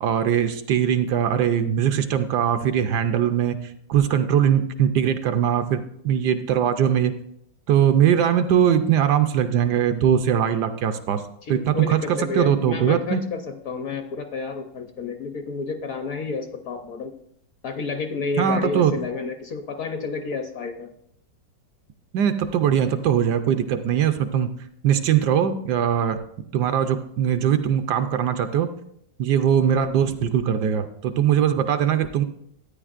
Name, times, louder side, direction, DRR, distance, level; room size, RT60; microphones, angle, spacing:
voice 1, 0.0-7.1 7.7-11.2 11.5-13.2 18.4-19.0 22.1-24.5 24.8-26.2 26.5-28.7 29.2-32.2, right 9 dB, 75° right, 9 dB, 1.1 m, -21 dB
voice 2, 11.4-17.1 17.6-20.9, left 4 dB, 60° left, 6 dB, 0.9 m, -30 dB
13.5 x 9.3 x 2.4 m, 0.72 s
omnidirectional pair, 2.0 m